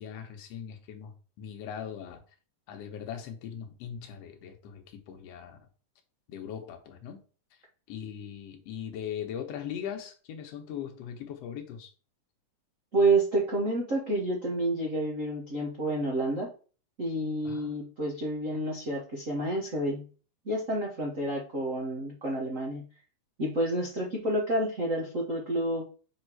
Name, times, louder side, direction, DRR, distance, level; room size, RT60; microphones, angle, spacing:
voice 1, 0.0-2.2 2.7-5.6 6.3-7.2 7.9-11.9 17.4-17.7, left 8 dB, 65° left, 4 dB, 1.8 m, -40 dB
voice 2, 12.9-16.5 17.0-20.1 20.4-22.9 23.4-25.8, right 2 dB, 75° right, -3 dB, 0.7 m, -29 dB
6.3 x 3.7 x 4.6 m, 0.38 s
omnidirectional pair, 3.7 m